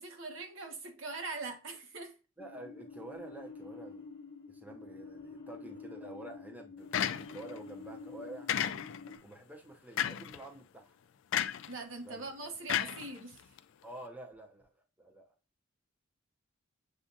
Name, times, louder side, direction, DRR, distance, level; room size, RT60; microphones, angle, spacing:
voice 1, 0.0-2.1 11.7-13.4, right 3 dB, 80° right, 1.1 m, -42 dB
sound 1, 2.4-9.2, left 4 dB, 35° left, 0.9 m, -48 dB
voice 2, 2.4-4.1 4.5-8.5 9.2-10.9 12.0-12.3 13.8-15.3, right 2 dB, 10° right, 0.7 m, -49 dB
sound 2, 6.9-7.6 8.5-9.1 10.0-10.4 11.3-11.7 12.7-13.6, left 9 dB, 70° left, 0.3 m, -33 dB
7.0 x 2.4 x 2.6 m
head